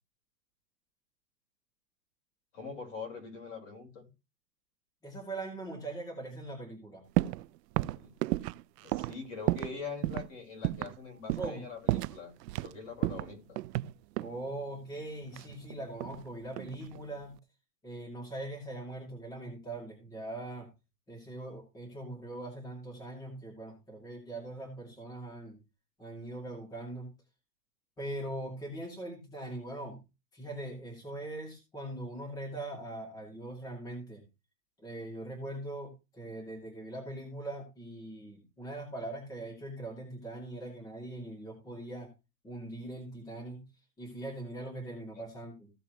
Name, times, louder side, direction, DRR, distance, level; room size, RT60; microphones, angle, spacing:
voice 1, 2.5-4.1 7.9-8.1 8.8-12.3 12.6-13.6 45.1-45.2, left 5 dB, 45° left, 4.4 m, -43 dB
voice 2, 5.0-7.0 11.4-11.6 14.2-17.4 17.8-20.7 21.1-25.6 26.0-27.1 28.0-30.0 30.3-34.2 34.8-42.1 42.4-43.6 44.0-45.7, right 1 dB, 5° left, 2.3 m, -41 dB
sound 1, 7.2-7.5 7.8-9.8 10.0-10.3 10.6-11.0 11.3-11.6 11.9-12.7 13.0-14.4 15.3-16.2 16.5-17.0, right 16 dB, 80° right, 0.5 m, -32 dB
15.5 x 7.0 x 3.1 m
supercardioid pair, 170°, 48 cm